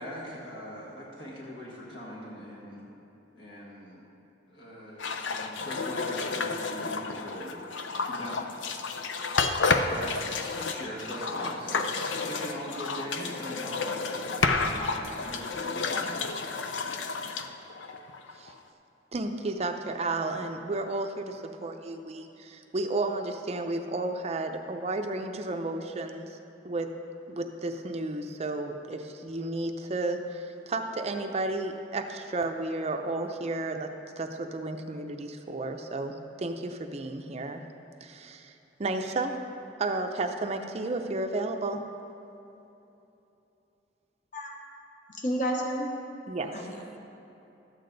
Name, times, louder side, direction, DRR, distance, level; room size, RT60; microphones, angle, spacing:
voice 1, 0.0-2.9 3.3-4.1 4.5-7.7 8.0-8.5 9.3-16.4 17.4-17.5, equal, 65° left, -6 dB, 1.7 m, -41 dB
sound 1, 5.0-18.5, left 4 dB, 85° left, 0.6 m, -31 dB
voice 2, 19.1-26.4 26.6-26.9 27.3-37.6 38.0-38.5 38.8-39.4 39.8-41.8 46.3-46.8, right 2 dB, 35° right, 5 dB, 0.5 m, -32 dB
voice 3, 45.1-45.9 46.5-47.0, equal, 45° left, 0 dB, 1.0 m, -31 dB
12.5 x 8.5 x 3.9 m, 3.0 s
head